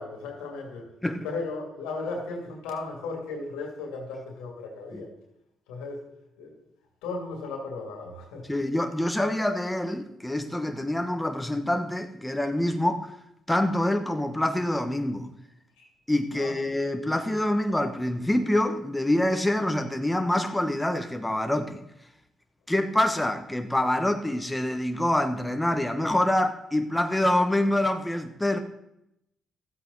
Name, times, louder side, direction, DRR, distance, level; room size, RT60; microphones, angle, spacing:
voice 1, 0.0-0.9 1.2-5.1 5.7-6.1 6.4-6.6 7.0-8.5 15.8-15.9 16.3-16.8, left 3 dB, 90° left, 2.5 m, -36 dB
voice 2, 8.5-13.1 13.5-15.3 16.1-21.8 22.7-28.6, left 1 dB, 10° left, 1.2 m, -26 dB
13.0 x 8.1 x 4.1 m
supercardioid pair, 60°, 0 cm